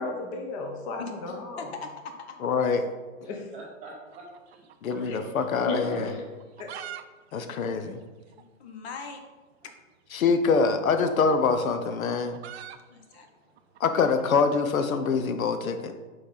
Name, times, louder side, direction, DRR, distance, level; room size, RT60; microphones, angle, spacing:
voice 1, 0.0-1.7 3.3-3.5 5.0-5.2 5.6-6.2 6.6-6.7, left 2 dB, 25° left, 2 dB, 0.7 m, -33 dB
voice 2, 1.6-2.4 4.8-4.9 7.4-7.5 8.3-9.2 9.6-9.7 12.9-13.8, left 4 dB, 50° left, 6 dB, 0.9 m, -41 dB
voice 3, 2.4-2.9 4.8-6.1 7.3-8.0 10.1-12.4 13.8-16.0, left 5 dB, 90° left, 8 dB, 0.8 m, -25 dB
voice 4, 3.5-5.5 6.4-6.5, right 3 dB, 20° right, -1 dB, 1.2 m, -45 dB
sound 1, 4.1-5.4 5.7-5.8 6.3-7.0 7.3-7.4 7.6-7.7 8.3-8.4 9.6-9.8 10.9-15.1, right 10 dB, 55° right, 0.5 m, -44 dB
6.2 x 4.8 x 3.8 m, 1.3 s
hypercardioid pair, 150°, 40 cm